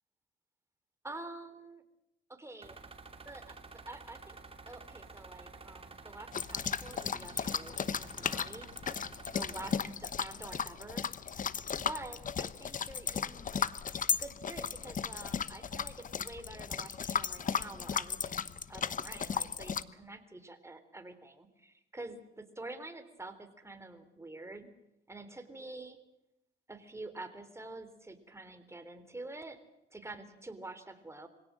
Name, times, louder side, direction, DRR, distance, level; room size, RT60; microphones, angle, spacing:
voice 1, 1.0-1.8 2.3-2.8 3.2-4.4 4.6-8.7 9.3-11.1 11.8-13.7 14.2-24.7 25.1-26.0 26.7-29.6 29.9-31.3, right 2 dB, 15° right, 8 dB, 3.6 m, -47 dB
sound 1, 2.6-9.8, right 4 dB, 30° right, 3.0 m, -51 dB
sound 2, 6.3-19.8, left 7 dB, 40° left, 1.0 m, -35 dB
24.5 x 17.5 x 7.6 m, 0.87 s
cardioid pair, 90°, 20 cm